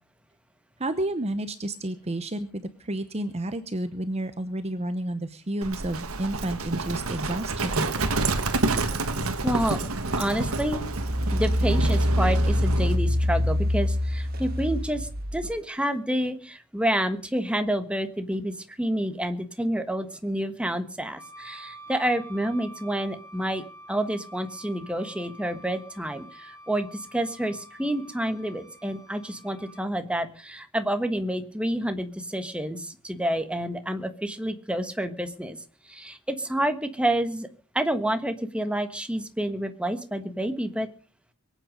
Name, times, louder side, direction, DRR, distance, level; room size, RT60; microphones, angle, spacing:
voice 1, 0.8-7.9, right 1 dB, 30° right, 11 dB, 0.9 m, -30 dB
Livestock farm animals working animals, 5.6-13.0, right 3 dB, 70° right, 1.7 m, -29 dB
voice 2, 9.4-9.9 10.2-10.8 11.3-23.6 23.9-35.6 35.9-37.5 37.7-40.9, right 1 dB, 5° right, 8 dB, 1.3 m, -29 dB
Engine, 9.6-15.5, left 1 dB, 45° right, 1.6 m, -26 dB
Wind instrument woodwind instrument, 21.2-29.8, right 1 dB, 15° left, 7.8 m, -47 dB
23.0 x 9.1 x 5.3 m, 0.37 s
head